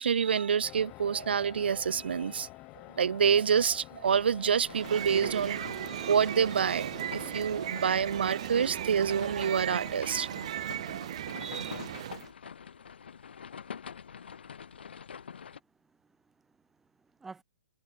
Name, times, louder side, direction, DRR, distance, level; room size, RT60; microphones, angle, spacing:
voice 1, 0.0-2.5 3.0-10.3 10.9-11.1 11.4-11.8, right 7 dB, 90° right, 0.6 m, -28 dB
sound 1, 0.6-10.6, left 22 dB, 15° left, 0.8 m, -49 dB
sound 2, 4.0-15.6, left 7 dB, 85° left, 0.9 m, -47 dB
sound 3, 4.7-12.3, right 12 dB, 35° right, 0.5 m, -37 dB
voice 2, 15.5-17.4, right 4 dB, 5° right, 2.3 m, -53 dB
hypercardioid pair, 175°, 6 cm